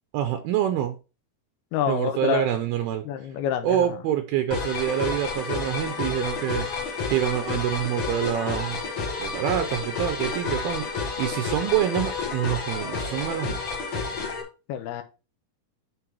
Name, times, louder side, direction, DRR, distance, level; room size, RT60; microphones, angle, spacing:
voice 1, 0.1-1.0 1.9-3.0 3.6-6.7 7.1-8.8 9.2-10.9 11.2-13.6, right 11 dB, 80° right, 2.4 m, -26 dB
voice 2, 1.7-2.4 3.1-3.9 14.7-15.0, left 10 dB, 80° left, 2.6 m, -27 dB
sound 1, 4.5-14.4, left 4 dB, 50° left, 1.4 m, -30 dB
9.9 x 3.4 x 4.6 m
omnidirectional pair, 4.6 m